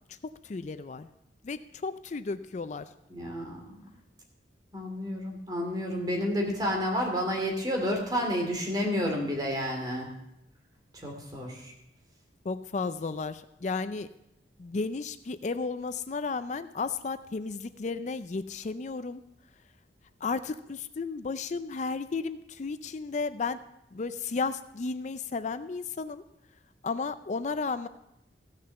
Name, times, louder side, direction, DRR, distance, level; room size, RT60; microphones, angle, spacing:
voice 1, 0.4-1.1 1.4-2.9 12.4-14.1 14.6-19.2 20.2-23.6 23.9-26.2 26.8-27.9, left 4 dB, 40° left, 12 dB, 0.4 m, -33 dB
voice 2, 3.1-3.6 4.7-10.1 11.0-11.7, equal, 20° right, 0 dB, 2.9 m, -30 dB
15.5 x 6.6 x 6.8 m, 0.84 s
head